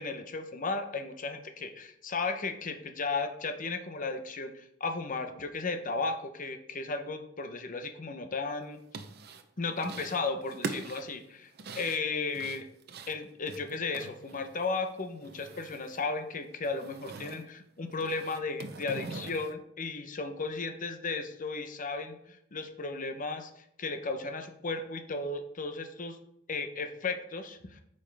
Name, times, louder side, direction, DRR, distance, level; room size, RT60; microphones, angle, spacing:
voice 1, 0.0-8.8 9.6-12.7 13.1-26.2 26.5-27.8, left 3 dB, 40° left, 7 dB, 0.8 m, -35 dB
sound 1, 8.7-9.5 9.8-10.2 10.5-14.8 15.0-16.1 16.3-17.4 17.9-19.5, right 3 dB, 55° right, 0.6 m, -42 dB
8.7 x 5.4 x 3.4 m, 0.75 s
head